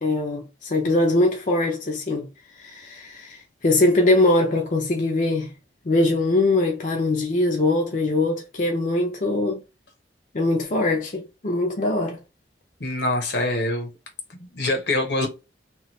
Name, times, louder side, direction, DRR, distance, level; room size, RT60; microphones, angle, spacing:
voice 1, 0.0-2.3 2.6-5.5 5.9-9.6 10.3-12.2, left 2 dB, 45° left, 0.5 m, -22 dB
voice 2, 12.8-13.9 14.3-15.3, left 2 dB, 70° left, 0.9 m, -24 dB
2.9 x 2.3 x 3.0 m
head